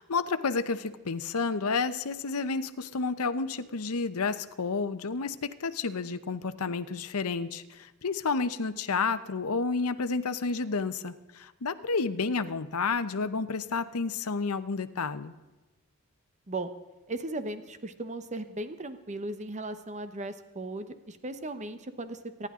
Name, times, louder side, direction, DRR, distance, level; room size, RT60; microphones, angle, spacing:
voice 1, 0.0-15.3, left 4 dB, 80° left, 11 dB, 0.8 m, -30 dB
voice 2, 17.1-22.5, right 2 dB, 35° right, 10 dB, 0.9 m, -37 dB
25.0 x 11.0 x 3.7 m, 1.1 s
head